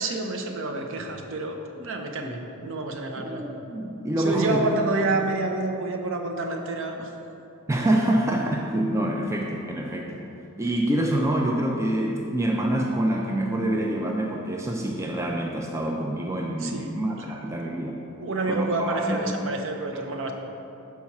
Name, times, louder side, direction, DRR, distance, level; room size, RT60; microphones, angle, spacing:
voice 1, 0.0-3.4 4.2-7.1 16.6-16.9 18.1-20.3, right 2 dB, 60° right, 4 dB, 0.6 m, -28 dB
voice 2, 3.2-4.6 7.7-10.2 10.6-18.0 18.5-19.2 19.9-20.0, right 1 dB, 15° right, 0 dB, 0.3 m, -26 dB
4.7 x 4.2 x 5.8 m, 2.8 s
head